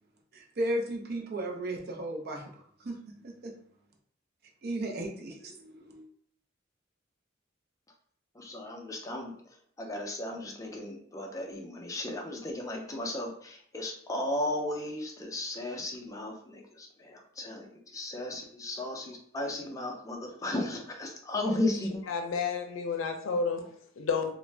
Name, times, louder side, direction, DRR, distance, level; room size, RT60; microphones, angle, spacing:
voice 1, 0.3-2.5 2.8-3.5 4.6-6.1, right 1 dB, 55° right, 1 dB, 0.5 m, -35 dB
voice 2, 8.3-22.0, left 1 dB, 15° left, 1 dB, 0.4 m, -35 dB
voice 3, 22.1-24.3, left 5 dB, 90° left, 5 dB, 0.5 m, -31 dB
2.4 x 2.0 x 3.2 m, 0.63 s
head